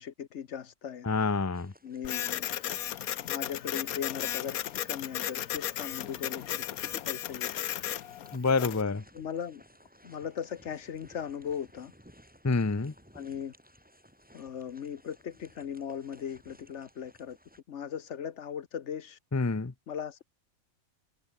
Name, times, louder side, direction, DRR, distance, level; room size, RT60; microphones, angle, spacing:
voice 1, 0.0-1.1 1.8-2.5 3.2-4.6 4.8-7.6 9.1-9.6 10.0-11.9 13.1-13.5 14.3-17.4 17.7-19.2 19.9-20.2, left 8 dB, 55° left, 1.1 m, -38 dB
voice 2, 1.0-1.7 8.3-9.0 12.4-12.9 19.3-19.7, left 4 dB, 20° left, 0.5 m, -27 dB
sound 1, 1.5-17.6, equal, 5° right, 8.1 m, -59 dB
Printer, 2.0-8.8, left 12 dB, 80° left, 1.3 m, -35 dB
omnidirectional pair, 1.5 m